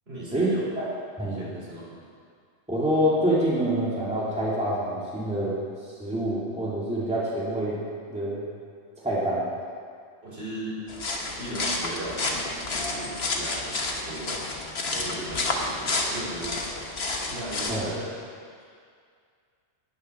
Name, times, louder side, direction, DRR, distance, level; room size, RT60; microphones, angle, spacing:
voice 1, 0.1-0.7 1.2-2.0 10.2-10.8 11.3-14.4 14.8-16.6 17.2-18.2 18.6-18.7, right 1 dB, 60° right, -7 dB, 4.4 m, -37 dB
voice 2, 2.7-7.8 8.1-8.4 9.0-9.5 17.7-17.8, right 1 dB, 5° right, -8 dB, 2.5 m, -26 dB
sound 1, 10.9-17.9, left 2 dB, 60° left, 1.5 m, -30 dB
18.5 x 6.6 x 6.1 m, 2.2 s
omnidirectional pair, 1.2 m